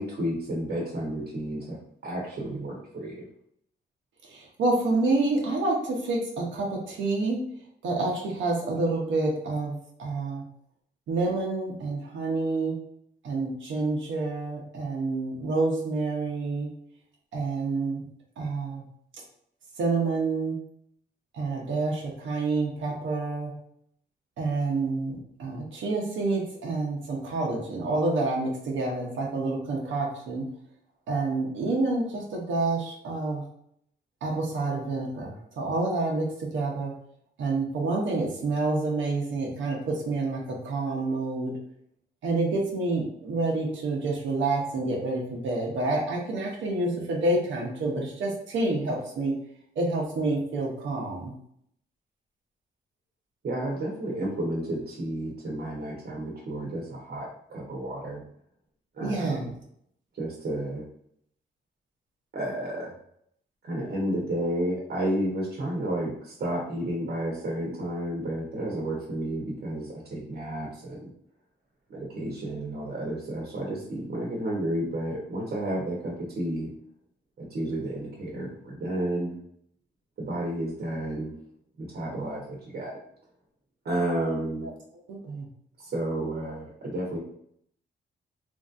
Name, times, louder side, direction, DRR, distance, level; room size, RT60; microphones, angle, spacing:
voice 1, 0.0-3.2 53.4-58.2 59.0-59.5 60.2-60.8 62.3-62.9 63.6-71.1 71.9-76.7 77.4-79.3 80.2-81.3 81.8-83.0 83.8-84.7 85.8-87.2, right 1 dB, 55° right, -2 dB, 0.8 m, -31 dB
voice 2, 4.3-7.4 7.8-10.4 11.1-12.8 13.2-16.7 17.3-18.0 18.4-18.8 19.8-20.6 21.3-23.5 24.4-30.4 31.1-33.4 34.2-36.9 37.4-41.5 42.2-49.3 49.8-51.3 59.0-59.5 85.1-85.5, right 3 dB, 90° right, -2 dB, 0.7 m, -28 dB
3.0 x 2.6 x 2.4 m, 0.69 s
cardioid pair, 105°, 19 cm